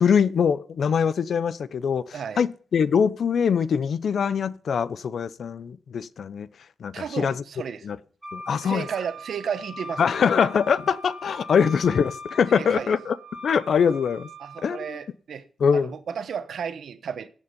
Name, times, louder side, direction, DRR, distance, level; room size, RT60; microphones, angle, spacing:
voice 1, 0.0-6.5 6.8-7.4 7.8-8.0 8.3-8.9 10.0-13.2 13.4-14.3 14.6-15.0 15.6-15.9, left 6 dB, 65° left, 0.7 m, -23 dB
voice 2, 2.1-2.4 6.9-7.9 8.6-10.0 12.5-12.9 14.4-15.4 15.7-17.3, right 7 dB, 75° right, 1.2 m, -33 dB
Wind instrument woodwind instrument, 8.2-15.0, left 1 dB, 10° right, 3.5 m, -41 dB
15.0 x 8.4 x 5.3 m
wide cardioid pair, 130°, 0 cm